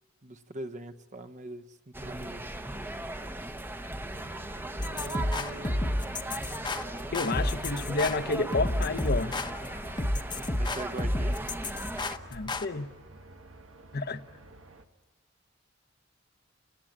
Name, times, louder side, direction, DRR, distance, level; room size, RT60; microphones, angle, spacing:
voice 1, 0.2-3.1 4.8-6.2 10.5-11.4, right 1 dB, 40° right, 1.0 m, -43 dB
sound 1, 1.9-12.2, right 1 dB, 10° right, 0.9 m, -38 dB
sound 2, 4.1-14.8, right 2 dB, 85° right, 1.5 m, -51 dB
sound 3, 4.8-12.6, left 1 dB, 25° left, 0.9 m, -31 dB
voice 2, 7.1-9.4 12.3-12.9 13.9-14.2, left 3 dB, 55° left, 0.9 m, -30 dB
29.5 x 18.5 x 8.7 m
head